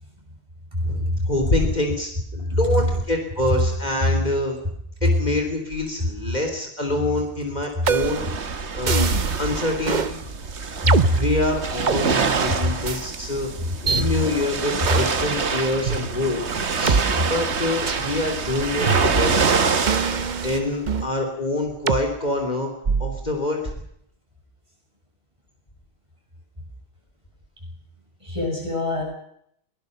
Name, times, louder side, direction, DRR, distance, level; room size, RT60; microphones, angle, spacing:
voice 1, 0.8-4.6 5.0-8.2 8.7-9.1 9.4-10.2 11.1-13.5 13.8-16.4 16.7-17.0 17.3-19.5 20.4-22.7 23.0-23.6, left 2 dB, 40° left, 4 dB, 3.6 m, -25 dB
sound 1, 7.9-8.3 8.9-9.4 9.9-10.1 10.9-12.0 12.9-13.0 13.9-14.0 14.9-15.3 15.9-16.0 16.9-17.0 17.9-18.1 18.9-19.4 19.9-21.1 21.9-22.1 22.9-23.2, right 5 dB, 45° right, 1.0 m, -24 dB
sound 2, 7.9-20.6, right 5 dB, 75° right, 1.7 m, -26 dB
voice 2, 28.2-29.0, left 2 dB, 25° right, -1 dB, 8.2 m, -23 dB
22.0 x 19.0 x 6.8 m, 0.71 s
omnidirectional pair, 1.1 m